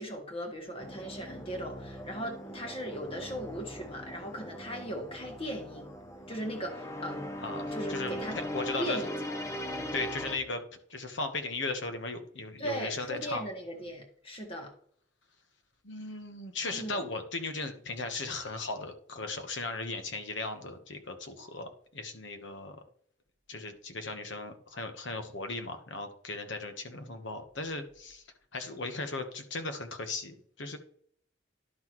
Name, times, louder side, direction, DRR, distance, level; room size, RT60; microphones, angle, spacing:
voice 1, 0.0-5.9 6.3-7.3 7.7-8.4 8.8-9.1 12.6-14.7 16.7-17.0, equal, 30° left, 1.6 m, -38 dB
sound 1, 0.8-10.4, equal, 15° left, 0.7 m, -40 dB
voice 2, 7.4-9.0 9.9-10.6 10.9-13.4 15.8-22.8 23.5-28.2 28.5-30.8, left 3 dB, 85° left, 1.1 m, -37 dB
11.0 x 5.9 x 3.1 m
head